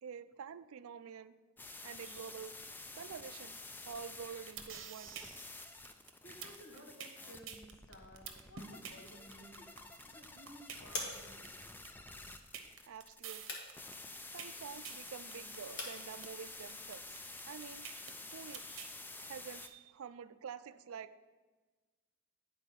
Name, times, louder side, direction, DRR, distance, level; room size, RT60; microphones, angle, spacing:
voice 1, 0.0-1.3 1.8-2.5 2.9-3.6 3.9-5.2 12.9-13.6 14.3-17.2 17.5-18.9 19.2-21.2, right 7 dB, 80° right, 14 dB, 0.4 m, -48 dB
sound 1, 1.6-19.7, left 2 dB, 10° left, 0.3 m, -50 dB
sound 2, 4.5-18.9, right 8 dB, 60° right, 0.8 m, -48 dB
voice 2, 6.0-9.7 10.0-11.8, equal, 80° left, 0 dB, 1.9 m, -56 dB
sound 3, 8.8-18.0, left 2 dB, 55° left, 1.6 m, -50 dB
9.7 x 4.4 x 6.0 m, 1.3 s
head